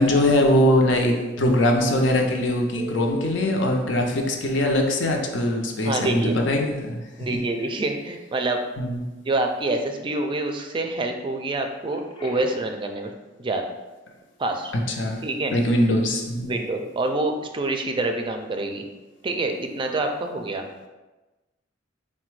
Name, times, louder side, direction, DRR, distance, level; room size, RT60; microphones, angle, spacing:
voice 1, 0.0-7.0 8.8-9.0 14.9-15.2 15.5-16.5, left 1 dB, 75° left, 2 dB, 0.6 m, -21 dB
Telephone, 2.8-3.5 4.0-4.1 5.9-6.0 6.4-6.6 11.9-12.7 19.8-20.0, equal, 25° left, 0.5 m, -37 dB
voice 2, 5.8-6.3 7.2-8.6 9.2-13.1 13.4-13.6 14.4-14.7 15.2-15.5 16.4-18.9 19.2-20.7, right 2 dB, 25° right, 4 dB, 0.4 m, -26 dB
4.1 x 2.2 x 4.6 m, 1.1 s
head